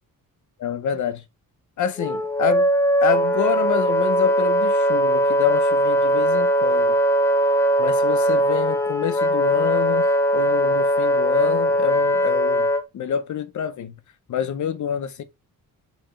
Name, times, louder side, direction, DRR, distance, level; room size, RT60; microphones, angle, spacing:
voice 1, 0.6-1.2 1.8-2.7 3.0-7.0 7.8-10.1 10.3-13.9 14.3-15.2, left 8 dB, 55° left, 0.7 m, -27 dB
Wind instrument woodwind instrument, 2.0-12.8, equal, 10° left, 0.3 m, -20 dB
4.5 x 2.9 x 3.7 m
wide cardioid pair, 145°, 35 cm